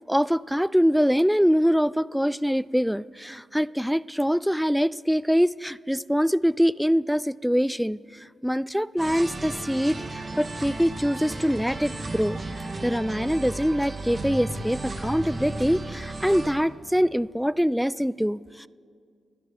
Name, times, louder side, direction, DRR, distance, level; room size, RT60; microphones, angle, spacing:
voice 1, 0.1-12.4 12.8-18.7, equal, ahead, 20 dB, 0.3 m, -24 dB
sound 1, 9.0-16.5, right 2 dB, 45° right, 2.2 m, -34 dB
30.0 x 10.0 x 4.3 m, 2.2 s
supercardioid pair, 50°, 0 cm